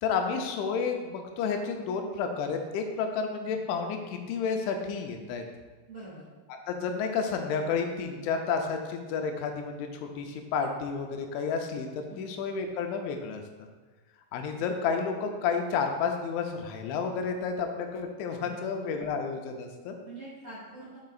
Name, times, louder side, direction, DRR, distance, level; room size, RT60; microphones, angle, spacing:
voice 1, 0.0-5.4 6.7-13.4 14.3-20.0, left 5 dB, 85° left, 4 dB, 3.1 m, -31 dB
voice 2, 5.9-6.2 12.1-12.3 18.4-18.7 20.0-21.0, right 2 dB, 35° right, -9 dB, 2.6 m, -45 dB
8.5 x 7.7 x 2.4 m, 1.3 s
omnidirectional pair, 5.3 m